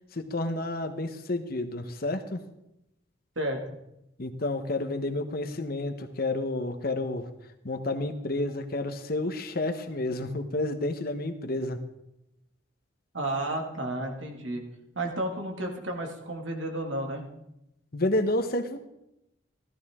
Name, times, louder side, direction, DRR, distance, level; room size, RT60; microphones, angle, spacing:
voice 1, 0.1-2.4 4.2-7.3 7.6-11.8 17.9-18.8, left 2 dB, 50° left, 8 dB, 1.0 m, -30 dB
voice 2, 13.1-14.6 15.0-17.2, right 1 dB, 80° right, 2 dB, 2.2 m, -32 dB
15.0 x 13.5 x 3.7 m, 0.86 s
head